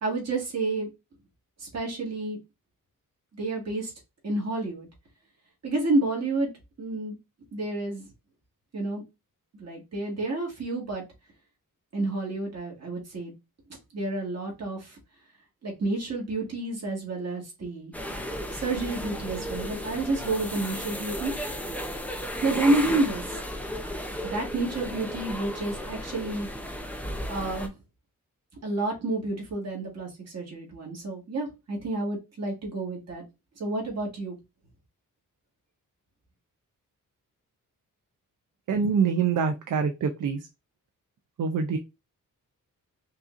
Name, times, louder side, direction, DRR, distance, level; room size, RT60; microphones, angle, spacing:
voice 1, 0.0-0.9 1.6-2.4 3.3-3.9 4.2-4.9 5.6-6.5 6.8-7.2 7.5-8.1 8.7-9.0 9.6-11.0 11.9-13.3 13.9-15.0 15.6-17.9 18.5-21.3 22.4-23.4 24.3-26.5 27.3-27.7 28.6-33.2 33.6-34.4, right 2 dB, 50° right, -1 dB, 1.9 m, -29 dB
sound 1, 17.9-27.7, equal, 5° left, 0.5 m, -34 dB
voice 2, 38.7-40.5 41.4-41.8, right 6 dB, 65° right, 6 dB, 0.6 m, -25 dB
5.3 x 2.7 x 2.5 m, 0.24 s
wide cardioid pair, 145°, 33 cm